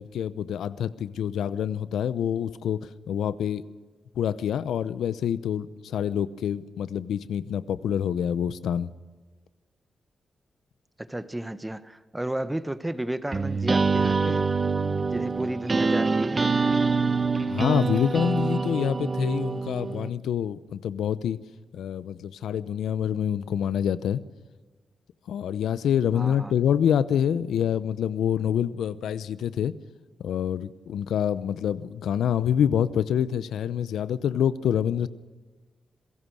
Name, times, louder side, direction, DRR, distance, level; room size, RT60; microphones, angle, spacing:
voice 1, 0.0-2.8 3.1-3.6 4.2-8.9 17.5-21.4 21.7-24.2 25.3-29.7 30.2-35.1, left 9 dB, 85° left, 16 dB, 0.8 m, -26 dB
voice 2, 11.0-14.4 15.1-16.5 26.1-26.5, right 1 dB, 15° right, 13 dB, 1.4 m, -33 dB
sound 1, 13.3-20.1, right 4 dB, 40° right, 1.1 m, -25 dB
26.5 x 17.5 x 6.4 m, 1.4 s
supercardioid pair, 50°, 0 cm